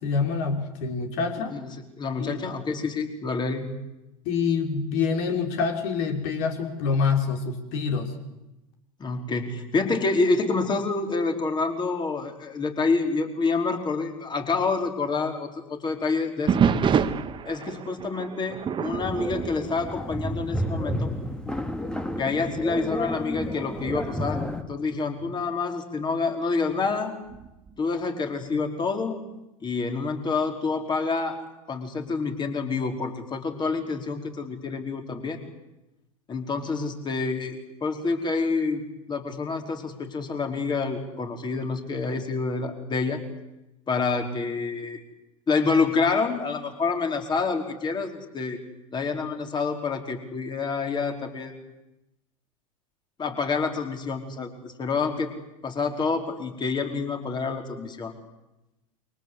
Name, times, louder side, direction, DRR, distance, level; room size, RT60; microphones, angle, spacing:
voice 1, 0.0-1.5 2.2-2.4 4.2-8.1, left 5 dB, 55° left, 4 dB, 5.1 m, -26 dB
voice 2, 1.5-3.7 9.0-16.7 17.4-21.1 22.2-27.1 27.8-29.2 29.6-31.4 31.7-35.4 36.3-37.6 37.8-38.8 39.1-43.2 43.9-45.0 45.5-48.6 48.9-51.5 53.2-55.3 55.6-58.1, left 4 dB, 25° left, 5 dB, 4.8 m, -27 dB
sound 1, 16.5-20.6 20.9-21.3 21.9-22.0 22.7-25.4 27.3-27.8, right 7 dB, 25° right, 1.8 m, -28 dB
sound 2, 19.0-24.6, equal, 5° left, 2.4 m, -31 dB
29.0 x 24.5 x 8.3 m, 0.95 s
hypercardioid pair, 90°, 18 cm